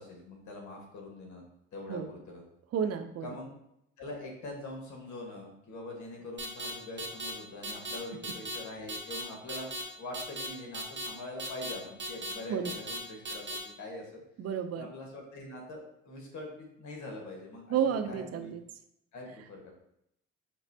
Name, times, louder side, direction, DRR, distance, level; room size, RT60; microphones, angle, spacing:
voice 1, 0.0-1.4 1.7-2.4 3.2-3.5 4.0-9.7 10.0-14.2 14.8-18.5 19.1-19.7, left 2 dB, 70° left, 0 dB, 1.4 m, -43 dB
voice 2, 2.7-3.3 12.5-12.7 14.4-14.9 17.7-18.6, right 8 dB, 55° right, 9 dB, 0.5 m, -31 dB
sound 1, 6.4-6.7 7.0-7.3 7.6-8.0 8.2-8.6 8.9-9.2 9.5-9.8 10.1-10.5 10.7-11.1 11.4-11.7 12.0-12.3 12.6-13.0 13.2-13.6, right 1 dB, 35° right, 0.9 m, -37 dB
5.2 x 3.1 x 2.7 m, 0.78 s
cardioid pair, 90°, 30 cm